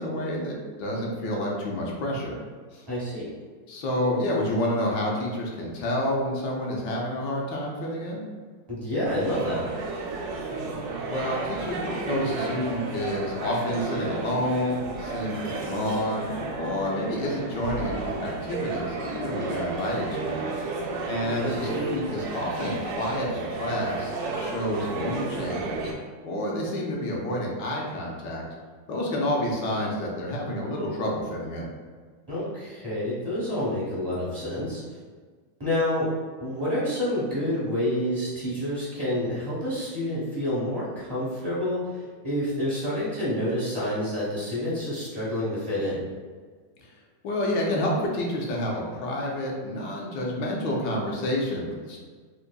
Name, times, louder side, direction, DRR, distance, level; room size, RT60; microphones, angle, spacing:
voice 1, 0.0-2.4 2.7-2.8 3.7-8.2 11.1-16.2 16.5-20.7 21.0-25.9 26.2-28.4 28.9-31.7 47.2-52.0, left 1 dB, 75° left, -2 dB, 1.3 m, -29 dB
voice 2, 2.9-3.3 8.7-9.6 21.4-21.8 32.3-34.8 35.6-36.1 36.4-46.0, left 1 dB, 35° right, -10 dB, 0.4 m, -28 dB
sound 1, 9.0-25.9, right 3 dB, 85° right, 1.3 m, -32 dB
3.8 x 2.6 x 2.2 m, 1.5 s
omnidirectional pair, 2.0 m